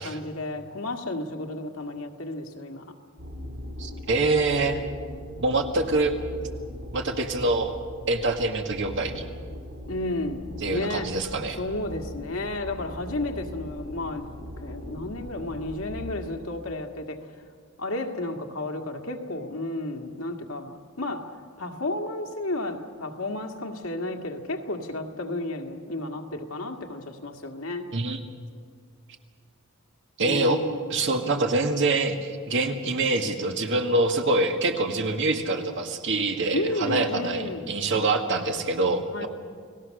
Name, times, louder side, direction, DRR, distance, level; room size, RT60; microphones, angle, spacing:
voice 1, 0.0-2.9 9.9-11.1 11.4-17.2 17.8-21.3 21.6-27.9 30.2-30.9 36.5-37.6 39.1-39.3, left 2 dB, 70° left, 4 dB, 1.9 m, -32 dB
sound 1, 3.2-16.1, left 1 dB, 75° right, 5.1 m, -40 dB
voice 2, 3.8-4.8 5.4-6.1 6.9-7.7 8.1-9.3 10.6-11.6 27.9-28.2 30.2-30.6 30.9-39.3, right 2 dB, 55° right, 4 dB, 2.0 m, -25 dB
30.0 x 18.5 x 6.6 m, 2.1 s
head